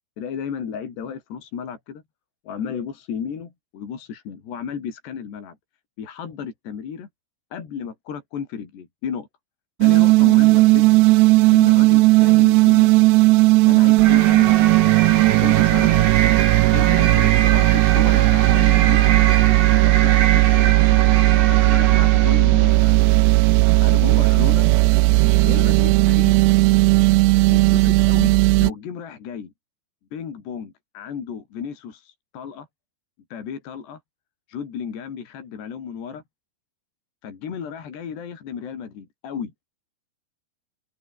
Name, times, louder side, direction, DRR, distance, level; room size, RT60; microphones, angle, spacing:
voice 1, 0.2-2.0 2.5-5.6 6.0-7.1 7.5-9.3 9.8-11.1 11.5-13.3 13.6-14.9 15.4-16.2 16.7-19.0 19.5-23.0 23.8-24.7 25.4-26.4 27.5-29.5 30.1-32.7 33.3-34.0 34.5-36.2 37.2-39.5, left 7 dB, 70° left, 6.0 m, -33 dB
sound 1, 9.8-28.7, right 21 dB, 85° right, 2.7 m, -15 dB
sound 2, 14.0-22.6, right 8 dB, 70° right, 5.4 m, -25 dB
omnidirectional pair, 5.1 m